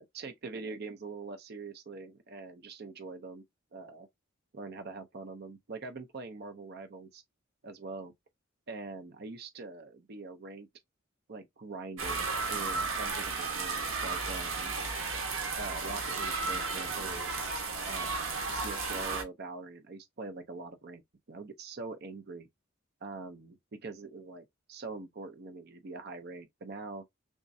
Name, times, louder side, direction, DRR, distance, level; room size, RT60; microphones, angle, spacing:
voice 1, 0.0-3.4 3.7-4.1 4.5-7.2 7.6-8.1 8.7-10.7 11.3-14.7 15.5-17.3 17.8-21.0 21.3-22.5 23.0-27.0, right 3 dB, 50° right, 0.6 m, -43 dB
sound 1, 12.0-19.2, right 4 dB, 90° right, 1.1 m, -34 dB
3.6 x 3.0 x 2.6 m
head